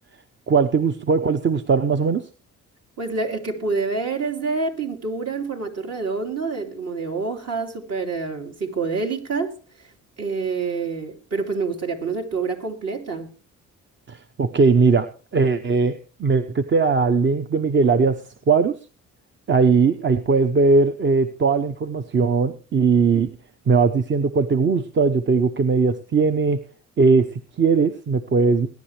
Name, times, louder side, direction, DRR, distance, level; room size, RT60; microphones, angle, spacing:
voice 1, 0.5-2.3 14.1-15.1 15.3-18.8 19.5-23.3 23.7-26.6 27.0-28.7, right 4 dB, 40° right, 10 dB, 0.9 m, -19 dB
voice 2, 3.0-9.9 10.2-13.3, right 4 dB, 55° right, 3 dB, 3.0 m, -27 dB
21.0 x 10.5 x 3.3 m, 0.36 s
cardioid pair, 90°, 30 cm